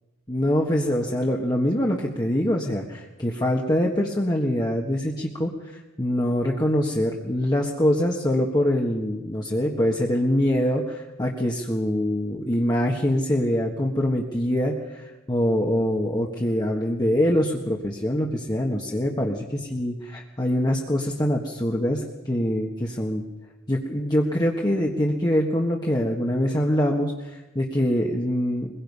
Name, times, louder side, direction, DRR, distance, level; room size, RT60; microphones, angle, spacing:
voice 1, 0.3-5.6 6.0-23.2 23.7-28.7, equal, 20° left, -1 dB, 1.6 m, -24 dB
23.0 x 21.5 x 5.5 m, 1.1 s
head